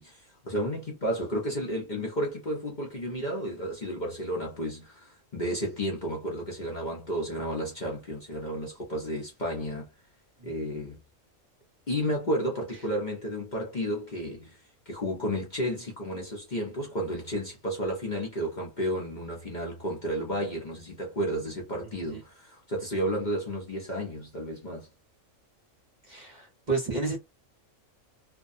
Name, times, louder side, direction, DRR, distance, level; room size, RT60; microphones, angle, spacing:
voice 1, 0.0-9.9 10.4-11.0 11.9-14.6 14.9-24.9, equal, 40° left, 0.8 m, -32 dB
voice 2, 26.1-27.2, right 4 dB, 35° right, 0.9 m, -31 dB
2.6 x 2.2 x 2.5 m
omnidirectional pair, 1.4 m